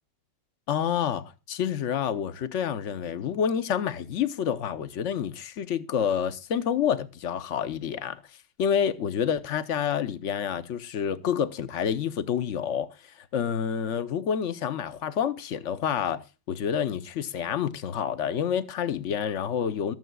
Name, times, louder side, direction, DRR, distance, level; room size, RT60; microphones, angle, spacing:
voice 1, 0.7-8.2 8.6-19.9, left 8 dB, 55° left, 0.9 m, -28 dB
22.5 x 7.8 x 2.3 m
omnidirectional pair, 1.9 m